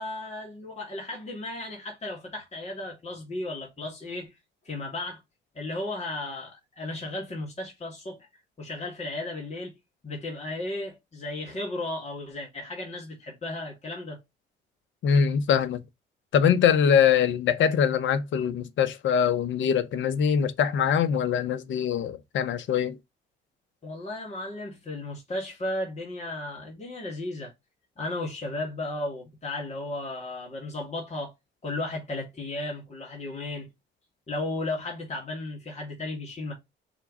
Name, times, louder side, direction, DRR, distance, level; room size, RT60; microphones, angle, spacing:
voice 1, 0.0-4.3 4.6-5.2 5.5-8.3 8.6-9.8 10.0-14.2 23.8-27.5 28.0-31.3 31.6-33.7 34.3-36.5, left 2 dB, 35° left, 2.9 m, -34 dB
voice 2, 15.0-15.8 16.3-23.0, left 7 dB, 70° left, 0.9 m, -23 dB
5.5 x 3.7 x 4.8 m
cardioid pair, 90°, 20 cm